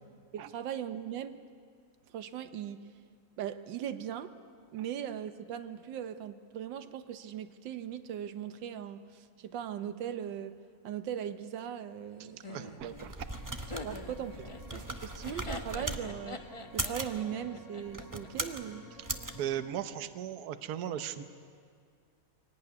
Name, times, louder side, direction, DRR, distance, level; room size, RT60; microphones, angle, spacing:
voice 1, 0.3-1.4 2.1-2.8 3.4-4.3 4.7-10.6 10.8-13.0 13.8-14.4 14.7-16.4 16.7-18.8, right 9 dB, 85° right, 10 dB, 1.6 m, -39 dB
voice 2, 12.2-13.1 19.0-19.1 19.3-21.2, right 10 dB, 60° right, 10 dB, 1.3 m, -37 dB
Laughter, 12.4-18.5, left 2 dB, 25° left, 0.8 m, -45 dB
sound 1, 12.8-16.0 16.6-17.2 17.9-18.6 19.0-19.3, right 2 dB, 15° right, 0.6 m, -38 dB
sound 2, 13.2-19.7, equal, 55° left, 3.2 m, -53 dB
23.5 x 17.5 x 9.5 m, 2.1 s
omnidirectional pair, 1.9 m